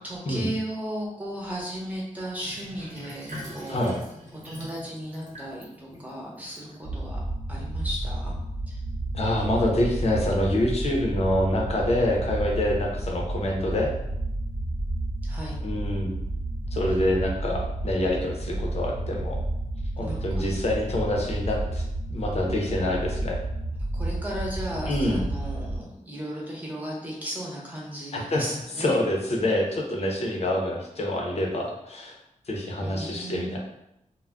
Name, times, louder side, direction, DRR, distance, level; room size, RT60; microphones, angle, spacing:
voice 1, 0.0-3.9 4.4-7.2 7.5-8.3 8.7-8.8 15.2-15.6 20.0-20.5 23.9-29.0 32.8-33.6, right 1 dB, 10° right, -4 dB, 0.9 m, -35 dB
Sink (filling or washing), 2.4-7.1, equal, 70° right, 1.1 m, -43 dB
voice 2, 3.6-4.0 9.1-13.9 15.6-16.1 16.7-19.4 20.0-21.8 22.1-23.4 24.9-25.2 28.1-28.4 28.8-32.2 32.5-33.6, left 1 dB, 50° left, -1 dB, 0.6 m, -26 dB
sound 1, 6.8-25.8, right 1 dB, 40° right, 0.9 m, -31 dB
2.2 x 2.1 x 3.5 m, 0.83 s
wide cardioid pair, 100°, 13 cm